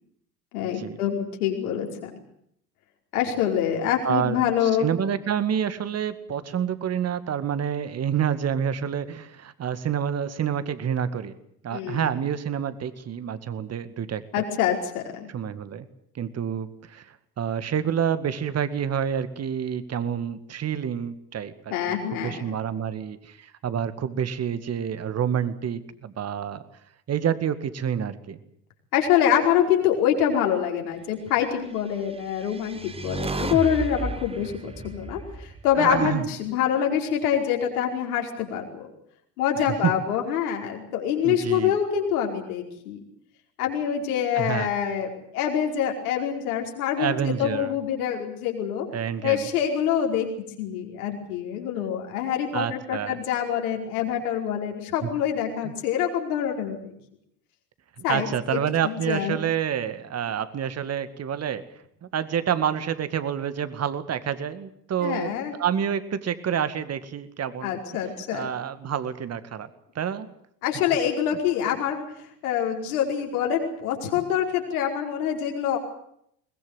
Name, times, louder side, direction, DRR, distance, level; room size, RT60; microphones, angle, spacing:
voice 1, 0.5-2.1 3.1-4.9 11.7-12.0 14.3-15.3 21.7-22.4 28.9-38.9 39.4-43.0 43.6-48.9 49.2-50.3 50.6-56.9 58.0-59.4 65.0-65.5 67.6-68.5 70.6-72.0 72.4-75.8, left 9 dB, 65° left, 2 dB, 5.1 m, -25 dB
voice 2, 4.0-11.4 11.6-14.4 15.3-15.9 16.1-26.6 27.1-28.4 35.7-36.3 39.6-39.9 41.2-41.8 44.3-44.7 47.0-47.8 48.9-49.5 52.5-53.2 55.0-55.1 55.6-55.7 58.0-61.7 62.0-67.8 68.3-69.7 70.0-70.3, right 8 dB, 30° right, 13 dB, 2.1 m, -28 dB
sound 1, 32.1-36.5, right 3 dB, 10° right, 1.4 m, -34 dB
22.0 x 20.5 x 8.2 m, 0.72 s
figure-of-eight pair, 70°, 48 cm